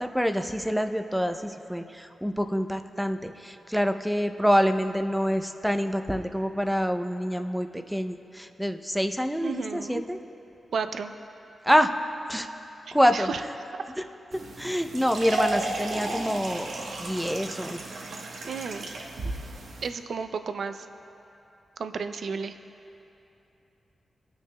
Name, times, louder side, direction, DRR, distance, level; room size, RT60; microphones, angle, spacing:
voice 1, 0.0-10.2 11.7-11.9 12.3-12.5 12.9-13.3 14.0-14.1 14.6-16.7 17.0-17.8, equal, ahead, 7 dB, 0.5 m, -26 dB
voice 2, 9.4-10.0 10.7-11.1 13.1-13.4 18.4-18.9 19.8-20.8 21.8-22.6, right 5 dB, 70° right, 8 dB, 0.4 m, -32 dB
sound 1, 14.3-19.9, right 2 dB, 90° right, 1.1 m, -34 dB
25.0 x 9.4 x 2.2 m, 2.9 s
wide cardioid pair, 115°, 0 cm